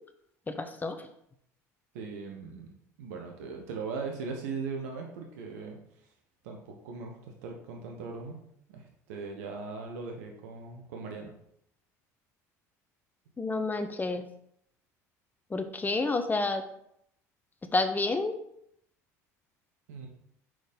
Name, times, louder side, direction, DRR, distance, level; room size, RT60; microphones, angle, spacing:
voice 1, 0.5-1.1 13.4-14.2 15.5-16.6 17.7-18.3, left 3 dB, 20° left, 8 dB, 0.8 m, -29 dB
voice 2, 1.9-2.7 3.0-6.1 6.4-8.4 8.7-11.3 19.9-20.1, right 4 dB, 75° right, 2 dB, 1.1 m, -39 dB
6.1 x 4.2 x 5.3 m, 0.73 s
hypercardioid pair, 75°, 9 cm